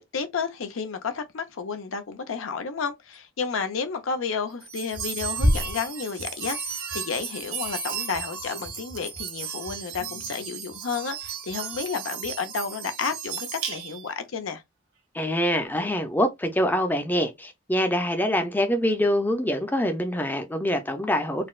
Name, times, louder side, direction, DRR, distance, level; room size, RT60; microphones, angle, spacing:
voice 1, 0.0-14.6, left 5 dB, 90° left, 0.6 m, -31 dB
sound 1, 4.6-14.1, right 3 dB, 75° right, 1.2 m, -32 dB
voice 2, 15.1-21.5, equal, 10° left, 0.5 m, -25 dB
4.0 x 2.2 x 2.3 m
head